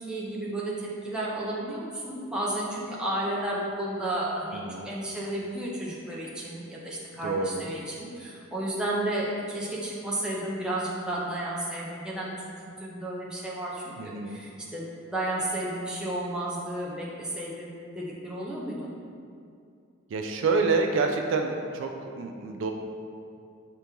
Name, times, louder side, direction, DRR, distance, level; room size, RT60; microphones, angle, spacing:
voice 1, 0.0-18.9, right 1 dB, 5° right, -6 dB, 0.5 m, -32 dB
voice 2, 4.5-4.9 7.2-7.7 14.0-14.4 20.1-22.7, right 4 dB, 65° right, 4 dB, 0.3 m, -28 dB
5.2 x 2.9 x 3.4 m, 2.4 s
head